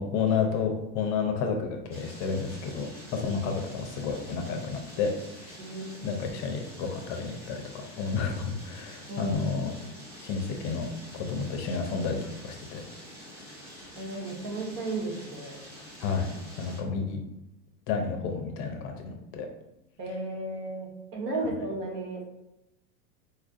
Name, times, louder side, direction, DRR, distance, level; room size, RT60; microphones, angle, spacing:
voice 1, 0.0-5.1 5.4-5.6 6.0-9.7 10.2-10.9 11.1-12.2 12.4-12.8 16.0-16.3 16.6-17.2 17.9-19.5, left 5 dB, 35° left, 3 dB, 0.4 m, -31 dB
sound 1, 1.9-16.8, equal, 5° right, 0.9 m, -47 dB
voice 2, 5.6-6.0 9.1-9.9 14.0-15.6 20.0-22.2, right 2 dB, 90° right, -1 dB, 1.2 m, -34 dB
4.2 x 2.5 x 2.4 m, 0.91 s
supercardioid pair, 125°, 47 cm